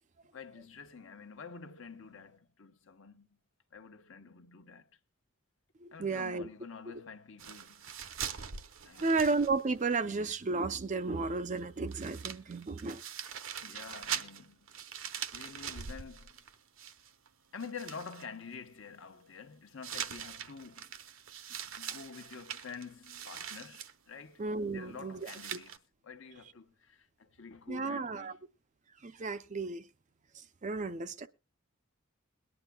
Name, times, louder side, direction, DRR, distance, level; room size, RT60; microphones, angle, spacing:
voice 1, 0.3-3.4 3.7-4.9 5.9-7.9 8.8-9.2 13.6-14.7 15.3-16.4 17.5-20.9 21.5-24.4 24.7-28.4, left 5 dB, 65° left, 1.0 m, -48 dB
voice 2, 5.8-6.5 9.0-13.0 24.4-25.6 27.7-28.3 29.0-29.8 30.6-31.3, right 3 dB, 35° right, 0.5 m, -33 dB
sound 1, 7.4-10.0 10.2-10.3 11.6-11.7 11.9-17.3 17.6-18.3 19.8-23.9 25.2-25.8, right 8 dB, 65° right, 0.8 m, -42 dB
22.0 x 9.8 x 2.2 m
head